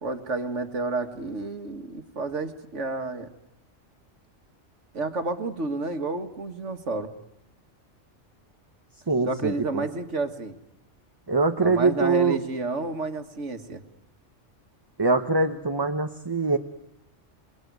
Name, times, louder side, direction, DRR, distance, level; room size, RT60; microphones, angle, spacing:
voice 1, 0.0-3.3 4.9-7.1 9.2-10.6 11.6-13.8, right 3 dB, 70° right, 7 dB, 2.1 m, -30 dB
voice 2, 9.1-9.8 11.3-12.4 15.0-16.6, right 3 dB, 20° right, 7 dB, 1.0 m, -23 dB
28.0 x 21.0 x 9.5 m, 0.84 s
omnidirectional pair, 1.3 m